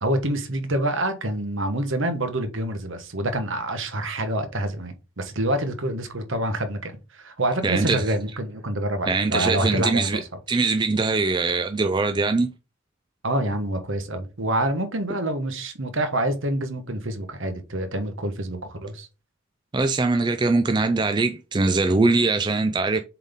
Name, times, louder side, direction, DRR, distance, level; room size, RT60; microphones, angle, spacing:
voice 1, 0.0-10.2 13.2-19.1, right 1 dB, 60° right, 1.2 m, -27 dB
voice 2, 7.6-8.0 9.1-10.2 10.5-12.5 19.7-23.0, right 3 dB, 20° right, 0.3 m, -22 dB
7.3 x 4.1 x 3.6 m
head